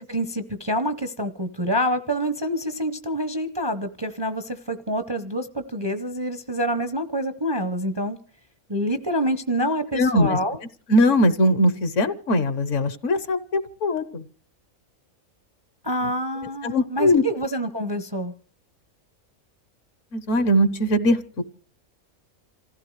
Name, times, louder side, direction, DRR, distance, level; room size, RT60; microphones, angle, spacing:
voice 1, 0.0-8.2 8.7-10.6 15.8-18.3, equal, 25° right, 9 dB, 0.6 m, -27 dB
voice 2, 9.9-10.4 10.9-14.2 16.6-17.2 20.1-21.4, left 1 dB, 60° left, 12 dB, 1.3 m, -20 dB
27.5 x 15.5 x 3.2 m, 0.41 s
omnidirectional pair, 1.5 m